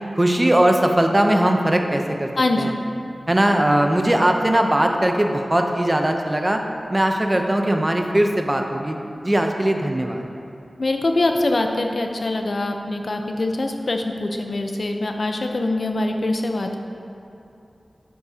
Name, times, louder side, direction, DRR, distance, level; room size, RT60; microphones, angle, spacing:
voice 1, 0.1-2.3 2.6-2.7 3.3-6.6 6.9-10.3, right 1 dB, 25° right, 3 dB, 0.7 m, -19 dB
voice 2, 2.4-2.7 10.8-16.8, left 2 dB, 65° left, 4 dB, 0.8 m, -23 dB
12.0 x 8.4 x 2.9 m, 2.8 s
wide cardioid pair, 75°, 0 cm